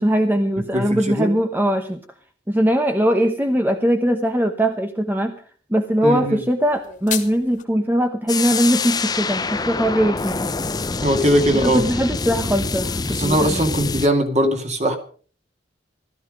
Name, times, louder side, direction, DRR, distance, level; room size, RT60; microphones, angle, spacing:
voice 1, 0.0-2.0 2.5-5.3 5.7-10.5 11.5-13.6, equal, 10° right, 6 dB, 0.9 m, -20 dB
voice 2, 0.7-1.3 6.0-6.4 11.0-11.8 13.1-15.0, equal, 35° right, 5 dB, 2.4 m, -20 dB
sound 1, 6.6-7.6, left 10 dB, 45° left, 2.1 m, -31 dB
sound 2, 8.3-14.1, left 4 dB, 20° left, 0.6 m, -25 dB
16.0 x 13.5 x 5.1 m, 0.43 s
head